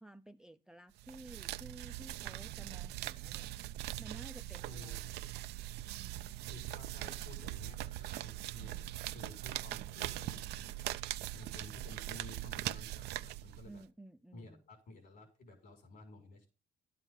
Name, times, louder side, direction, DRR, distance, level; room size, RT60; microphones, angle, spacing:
voice 1, 0.0-3.5 4.0-5.2 5.9-6.3 8.6-9.0 13.7-14.6, right 1 dB, 5° right, 0.5 m, -54 dB
sound 1, 1.0-13.8, right 15 dB, 80° right, 0.6 m, -41 dB
voice 2, 4.6-5.0 6.4-8.8 9.1-10.8 11.3-13.8 14.3-16.5, left 2 dB, 60° left, 5.9 m, -53 dB
12.0 x 9.1 x 3.9 m
cardioid pair, 110°, 17 cm